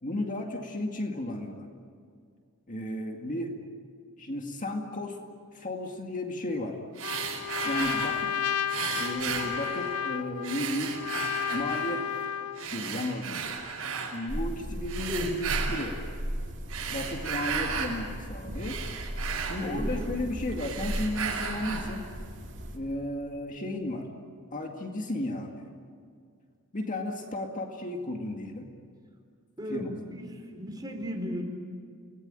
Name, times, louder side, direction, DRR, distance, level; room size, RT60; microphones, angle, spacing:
voice 1, 0.0-1.7 2.7-3.5 4.2-5.2 5.5-6.8 7.6-8.3 9.0-10.9 11.5-12.0 12.6-13.6 14.1-16.0 16.9-18.8 19.5-22.1 22.7-24.1 24.5-25.6 26.7-28.7 29.7-29.9, left 1 dB, 35° left, 2 dB, 2.2 m, -34 dB
sound 1, 6.9-8.3 8.7-10.1 10.4-12.0 12.5-14.1 14.8-16.0 16.6-18.0 18.4-20.2 20.5-22.0, right 6 dB, 75° right, 6.1 m, -35 dB
Trumpet, 7.0-12.7, left 8 dB, 75° left, 0.6 m, -32 dB
sound 2, 14.3-22.8, equal, 60° right, 3.0 m, -36 dB
voice 2, 19.7-20.0 29.6-31.4, equal, 20° right, 2 dB, 4.2 m, -36 dB
29.5 x 19.5 x 9.1 m, 2.2 s
head